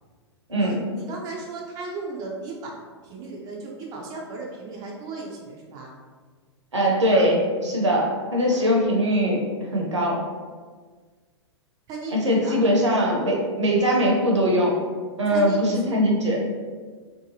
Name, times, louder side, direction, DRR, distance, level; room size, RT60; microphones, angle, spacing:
voice 1, 0.6-2.8 3.0-5.9 7.6-8.1 8.5-8.6 11.9-12.6 15.3-15.7, right 3 dB, 25° right, -2 dB, 0.4 m, -36 dB
voice 2, 6.7-10.2 12.1-14.7 15.2-16.4, equal, 75° right, -2 dB, 0.7 m, -21 dB
2.7 x 2.2 x 2.7 m, 1.5 s
figure-of-eight pair, 105°, 15 cm